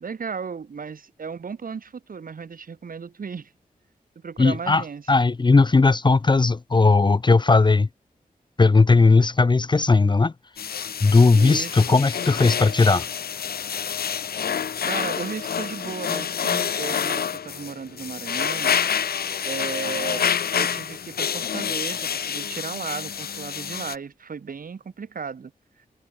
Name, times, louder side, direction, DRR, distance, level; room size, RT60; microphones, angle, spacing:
voice 1, 0.0-3.5 4.1-5.3 11.3-12.1 14.8-18.8 19.4-25.5, right 5 dB, 65° right, 1.5 m, -35 dB
voice 2, 4.4-7.9 8.6-10.3 11.0-13.1, left 3 dB, 30° left, 0.6 m, -17 dB
sound 1, 10.6-24.0, left 7 dB, 80° left, 0.7 m, -28 dB
wide cardioid pair, 85°, 16 cm